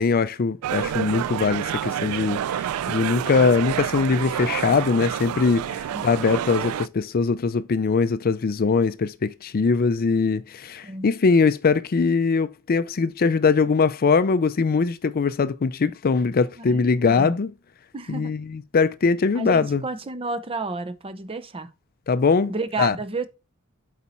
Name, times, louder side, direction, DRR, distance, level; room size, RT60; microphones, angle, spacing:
voice 1, 0.0-17.5 18.1-19.8 22.1-23.0, left 4 dB, 45° left, 0.4 m, -22 dB
sound 1, 0.6-6.9, right 10 dB, 90° right, 0.3 m, -28 dB
voice 2, 16.6-17.3 17.9-18.3 19.3-21.7 22.5-23.3, right 3 dB, 25° right, 0.6 m, -31 dB
8.2 x 4.2 x 4.2 m
head